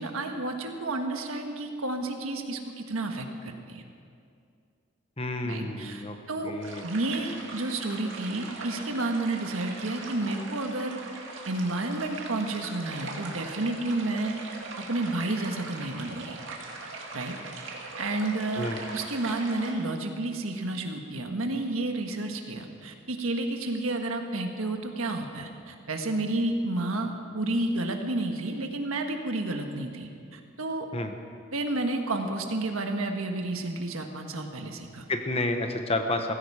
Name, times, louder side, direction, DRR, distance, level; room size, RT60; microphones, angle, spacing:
voice 1, 0.0-3.8 5.4-6.5 6.8-11.0 11.5-14.4 14.8-16.4 17.1-17.3 18.0-30.9 31.5-35.1, right 2 dB, 90° right, 4 dB, 1.5 m, -31 dB
voice 2, 5.2-6.2 6.4-6.9 18.6-18.8 30.9-31.1 35.1-36.3, left 2 dB, 30° left, 6 dB, 1.0 m, -30 dB
sound 1, 6.6-19.7, right 3 dB, 65° right, 2.2 m, -41 dB
18.0 x 15.5 x 4.9 m, 2.4 s
head